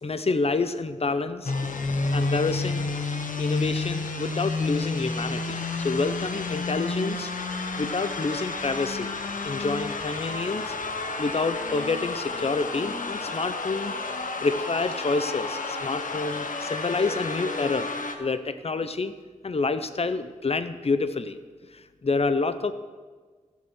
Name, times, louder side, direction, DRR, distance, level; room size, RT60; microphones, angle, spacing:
voice 1, 0.0-1.5 2.1-2.9 3.4-7.3 7.8-9.2 9.4-10.7 11.2-13.9 14.4-19.2 19.4-21.4 21.7-22.7, left 3 dB, 50° left, 11 dB, 0.7 m, -28 dB
sound 1, 1.4-18.1, left 3 dB, 75° left, 1.1 m, -30 dB
15.0 x 7.3 x 6.4 m, 1.5 s
wide cardioid pair, 65°, 14 cm